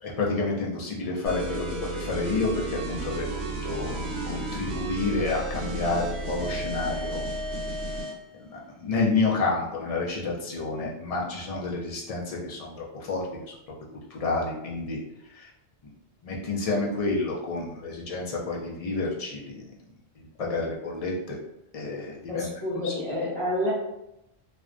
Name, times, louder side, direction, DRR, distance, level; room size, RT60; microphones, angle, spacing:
voice 1, 0.0-7.2 8.8-13.2 14.1-15.0 15.4-15.5 16.2-19.6 20.4-21.4 21.7-22.5 22.8-22.9, left 3 dB, 60° left, -3 dB, 0.4 m, -29 dB
sound 1, 1.3-8.2, right 1 dB, 80° right, 0.9 m, -33 dB
voice 2, 22.3-23.7, left 1 dB, 5° left, -9 dB, 0.8 m, -29 dB
2.4 x 2.1 x 2.4 m, 0.85 s
omnidirectional pair, 1.1 m